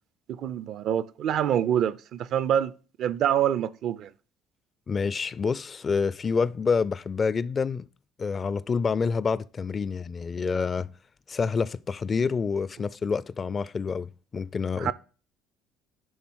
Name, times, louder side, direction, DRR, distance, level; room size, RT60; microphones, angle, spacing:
voice 1, 0.3-2.7 3.0-4.1 14.8-14.9, right 10 dB, 65° right, 0.5 m, -26 dB
voice 2, 4.9-7.9 8.2-10.9 11.3-14.9, left 5 dB, 35° left, 0.4 m, -27 dB
10.0 x 3.5 x 6.2 m
supercardioid pair, 85°, 0 cm